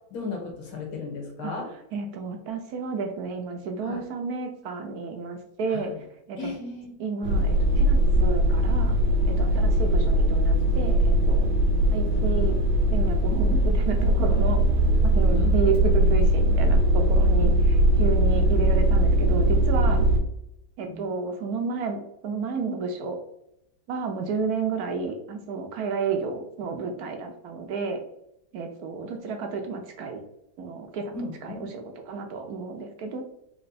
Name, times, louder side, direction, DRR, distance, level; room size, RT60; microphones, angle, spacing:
voice 1, 0.1-1.7 3.8-4.0 5.7-6.0 6.4-6.9 9.5-9.6 12.2-12.4 15.3-15.6 20.9-21.1 31.1-31.7, left 4 dB, 85° left, 0 dB, 2.2 m, -36 dB
voice 2, 1.9-5.9 6.3-6.5 7.0-9.0 9.3-11.5 11.9-12.6 12.9-14.6 15.0-20.1 20.8-22.0 22.2-23.2 23.9-28.0 28.5-30.2 30.6-31.2 31.4-33.2, right 4 dB, 65° right, 4 dB, 0.9 m, -31 dB
sound 1, 7.2-20.2, right 1 dB, 90° right, 1.6 m, -20 dB
4.4 x 3.0 x 4.0 m, 0.81 s
omnidirectional pair, 2.2 m